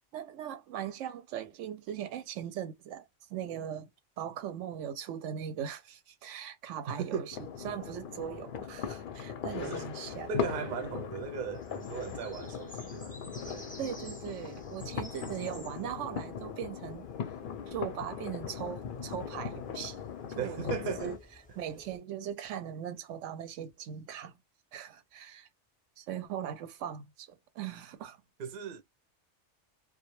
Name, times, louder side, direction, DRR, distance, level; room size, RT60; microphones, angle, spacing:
voice 1, 0.1-3.9 4.2-7.4 7.6-10.3 13.8-17.1 17.7-20.0 20.3-21.2 21.6-24.4 24.7-25.5 26.0-28.2, right 9 dB, 90° right, 0.9 m, -39 dB
voice 2, 6.9-7.3 9.6-9.9 10.3-13.7 20.4-21.1 28.4-28.8, right 7 dB, 55° right, 0.6 m, -37 dB
sound 1, 7.3-21.2, left 7 dB, 60° left, 0.6 m, -39 dB
sound 2, 10.0-22.0, left 1 dB, 10° left, 0.4 m, -55 dB
2.2 x 2.1 x 2.9 m
omnidirectional pair, 1.2 m